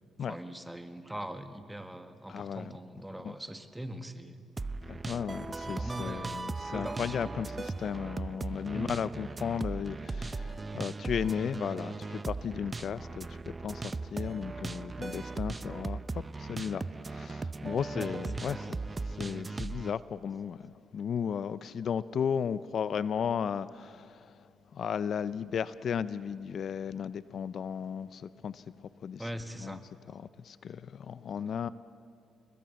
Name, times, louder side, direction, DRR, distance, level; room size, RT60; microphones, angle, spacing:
voice 1, 0.3-4.4 5.5-7.3 8.7-9.0 17.9-18.7 29.2-29.8, right 1 dB, 10° right, 1.7 m, -41 dB
voice 2, 2.3-2.7 3.2-3.3 4.9-18.7 19.0-24.3 24.7-28.6 29.0-29.3 29.6-29.8 30.1-31.7, left 7 dB, 55° left, 0.5 m, -35 dB
sound 1, 4.6-19.9, right 3 dB, 25° right, 0.6 m, -38 dB
29.5 x 21.5 x 7.1 m
cardioid pair, 90°, 0 cm